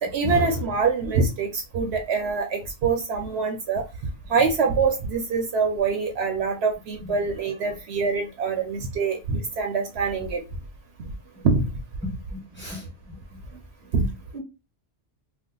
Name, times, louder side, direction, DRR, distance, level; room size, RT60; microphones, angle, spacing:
voice 1, 0.0-3.8 4.3-10.4 11.4-11.6 13.9-14.1, right 4 dB, 70° right, 4 dB, 0.8 m, -24 dB
voice 2, 12.3-13.2 14.3-14.4, left 1 dB, 10° left, -4 dB, 1.3 m, -39 dB
2.6 x 2.3 x 3.7 m, 0.27 s
omnidirectional pair, 1.2 m